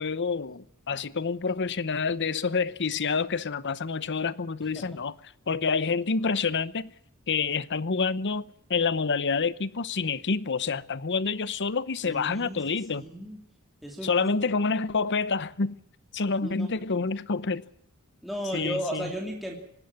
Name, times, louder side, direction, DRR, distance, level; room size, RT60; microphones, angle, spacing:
voice 1, 0.0-5.1 5.5-6.9 7.3-13.0 14.0-15.8 16.1-17.6 18.5-19.1, left 4 dB, 55° left, 0.9 m, -28 dB
voice 2, 12.0-12.6 12.9-13.4 13.8-14.5 16.4-17.1 18.2-19.6, equal, ahead, 2.9 m, -35 dB
25.5 x 12.5 x 9.8 m
head